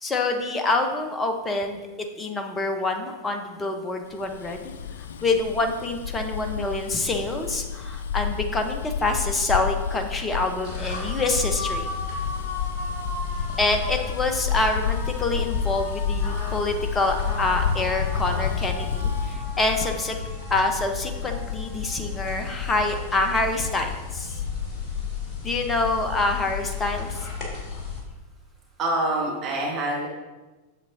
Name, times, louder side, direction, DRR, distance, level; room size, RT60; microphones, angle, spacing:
voice 1, 0.0-1.8 2.2-4.7 5.2-11.9 13.6-20.1 20.5-24.4 25.4-27.1, left 2 dB, 15° left, 4 dB, 0.8 m, -26 dB
Bus, 4.2-19.4, left 7 dB, 65° left, 0.3 m, -30 dB
sound 1, 10.6-28.0, left 6 dB, 35° left, 2.0 m, -33 dB
voice 2, 28.8-30.1, right 1 dB, 30° right, -3 dB, 1.6 m, -26 dB
8.2 x 7.0 x 2.7 m, 1.2 s
figure-of-eight pair, 90°, 0 cm